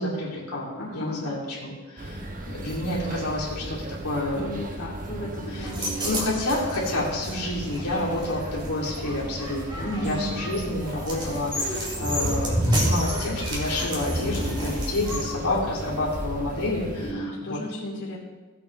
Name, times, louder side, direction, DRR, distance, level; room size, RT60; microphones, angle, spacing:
voice 1, 0.0-4.6 5.5-17.6, left 2 dB, 90° left, -5 dB, 2.6 m, -29 dB
voice 2, 0.7-1.3 4.3-6.3 9.8-10.4 17.0-18.2, equal, 55° left, -5 dB, 2.8 m, -34 dB
sound 1, 2.0-17.1, right 1 dB, 35° right, 1.1 m, -36 dB
sound 2, 5.6-15.3, equal, 20° right, 2.7 m, -30 dB
16.5 x 8.2 x 3.2 m, 1.3 s
head